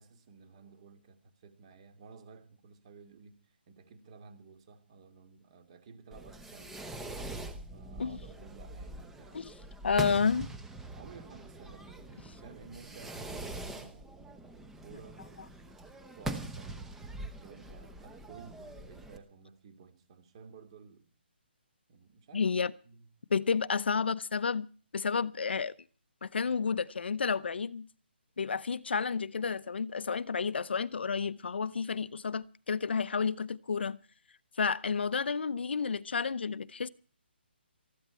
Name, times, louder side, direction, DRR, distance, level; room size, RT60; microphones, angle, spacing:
voice 1, 0.0-6.8 7.7-9.4 10.9-14.2 14.8-15.5 16.2-16.9 17.4-21.0 21.9-22.5 22.8-23.1, right 5 dB, 30° right, 2.5 m, -54 dB
Fireworks, 6.1-19.2, right 1 dB, 5° right, 1.1 m, -43 dB
voice 2, 9.8-10.5 22.3-22.7 23.3-24.7 24.9-25.7 26.2-27.9 28.4-34.0 34.6-36.9, left 5 dB, 70° left, 0.8 m, -31 dB
19.5 x 14.0 x 4.5 m
hypercardioid pair, 165°, 6 cm